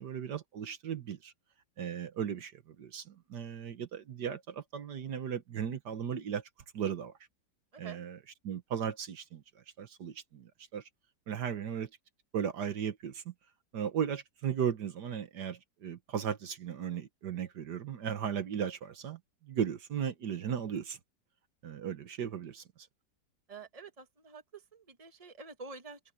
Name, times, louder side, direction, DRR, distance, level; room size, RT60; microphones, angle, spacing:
voice 1, 0.0-1.3 1.8-6.5 6.7-7.2 7.8-8.2 8.4-10.9 11.3-11.9 12.3-13.3 13.7-21.0 21.6-22.6, right 8 dB, 70° right, 1.7 m, -36 dB
voice 2, 23.5-26.0, right 4 dB, 20° right, 1.6 m, -48 dB
omnidirectional pair, 1.9 m